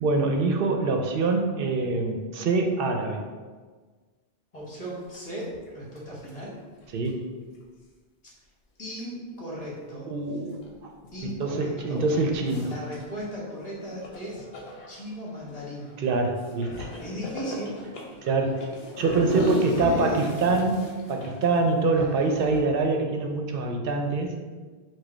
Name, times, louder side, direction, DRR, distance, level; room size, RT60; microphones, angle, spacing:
voice 1, 0.0-3.2 6.9-7.2 10.1-10.9 11.4-12.7 16.0-16.9 18.2-18.6 19.0-24.3, right 3 dB, 65° right, 3 dB, 0.7 m, -25 dB
voice 2, 4.5-6.5 8.8-10.1 11.1-12.0 12.6-14.4 14.9-15.9 17.0-17.8 19.3-20.4, equal, 35° left, -6 dB, 1.4 m, -37 dB
sound 1, 4.6-4.8 5.1-5.2 5.5-5.7 5.9-7.1 9.0-9.1 10.6-10.7 11.0-11.2 11.6-13.2 13.8-22.6, left 1 dB, 70° left, 1.0 m, -35 dB
4.9 x 2.2 x 4.2 m, 1.4 s
omnidirectional pair, 1.1 m